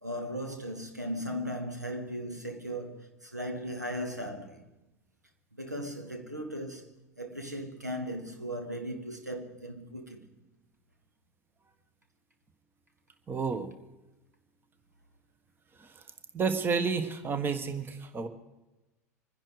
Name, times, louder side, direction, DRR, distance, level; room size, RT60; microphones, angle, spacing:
voice 1, 0.0-4.6 5.5-6.9 7.2-10.3, equal, 90° right, 1.6 m, -37 dB
voice 2, 13.3-13.7 15.8-16.0 16.3-18.3, right 5 dB, 25° right, 1.4 m, -31 dB
24.5 x 10.5 x 4.9 m
figure-of-eight pair, 80°, 9 cm